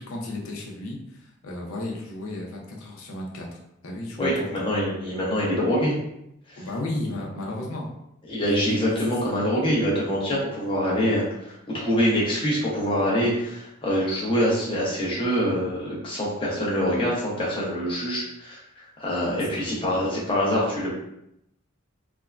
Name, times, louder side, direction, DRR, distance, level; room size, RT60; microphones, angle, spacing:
voice 1, 0.0-4.6 6.6-7.9 8.4-9.4 19.3-19.7, left 1 dB, 80° left, -1 dB, 0.7 m, -34 dB
voice 2, 4.2-6.0 6.5-6.6 8.3-18.6 19.0-20.9, equal, 25° left, -6 dB, 0.7 m, -25 dB
3.4 x 2.1 x 2.4 m, 0.81 s
head